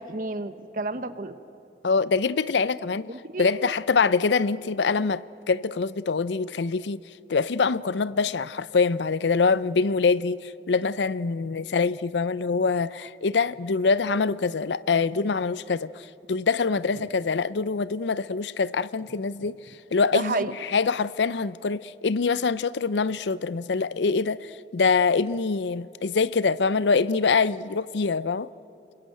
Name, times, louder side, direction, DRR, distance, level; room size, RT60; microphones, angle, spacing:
voice 1, 0.0-1.4 3.1-3.7 17.0-17.1 20.1-20.5, right 2 dB, 50° right, 1.0 m, -31 dB
voice 2, 1.8-3.1 3.4-5.2 5.5-7.0 7.3-19.6 19.9-28.5, left 4 dB, 80° left, 0.5 m, -24 dB
29.5 x 21.5 x 9.1 m
head